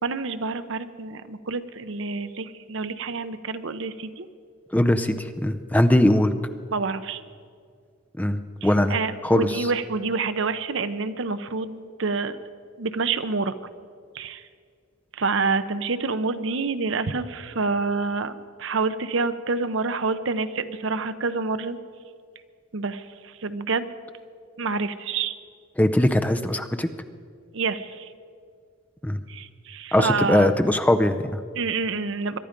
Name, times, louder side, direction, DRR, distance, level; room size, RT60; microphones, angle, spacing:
voice 1, 0.0-4.3 6.7-7.2 8.6-12.4 12.8-13.5 14.1-14.4 15.1-21.8 22.7-23.9 24.6-25.3 27.5-28.1 29.3-30.5 31.6-32.4, right 4 dB, 65° right, 12 dB, 0.7 m, -27 dB
voice 2, 4.7-6.3 8.2-9.0 9.2-9.7 25.8-26.9 29.0-29.2 29.9-31.4, left 1 dB, 10° left, 8 dB, 0.5 m, -21 dB
23.0 x 11.5 x 5.2 m, 2.1 s
head